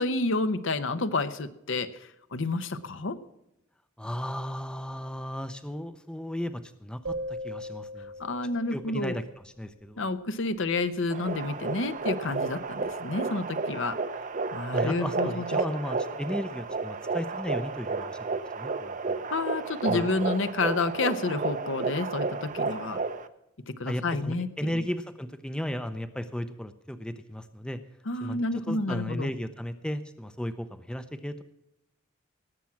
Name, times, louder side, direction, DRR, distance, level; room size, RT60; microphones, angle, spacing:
voice 1, 0.0-1.9 2.3-3.2 8.2-9.2 10.0-14.0 14.5-15.4 19.3-23.0 23.7-24.8 28.1-29.3, left 3 dB, 65° left, 11 dB, 0.9 m, -29 dB
voice 2, 4.0-8.1 8.7-10.0 14.7-19.2 19.9-20.1 23.9-27.8 28.2-31.4, equal, 5° left, 11 dB, 0.6 m, -35 dB
sound 1, 7.0-9.3, equal, 80° right, 2.5 m, -38 dB
sound 2, 11.1-23.3, right 3 dB, 40° right, 0.7 m, -32 dB
18.5 x 7.5 x 5.8 m, 0.87 s
head